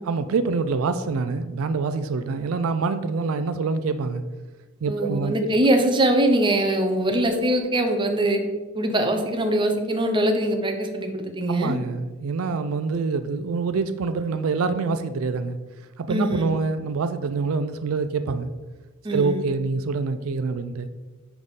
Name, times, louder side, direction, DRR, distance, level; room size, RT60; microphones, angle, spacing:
voice 1, 0.0-4.2 4.8-5.6 11.5-15.6 16.0-18.5 19.1-20.9, right 4 dB, 75° right, 10 dB, 0.4 m, -26 dB
voice 2, 4.9-8.4 8.7-11.8 16.1-16.5 19.0-19.4, right 1 dB, 25° right, 4 dB, 0.8 m, -22 dB
10.0 x 3.6 x 4.0 m, 1.3 s
head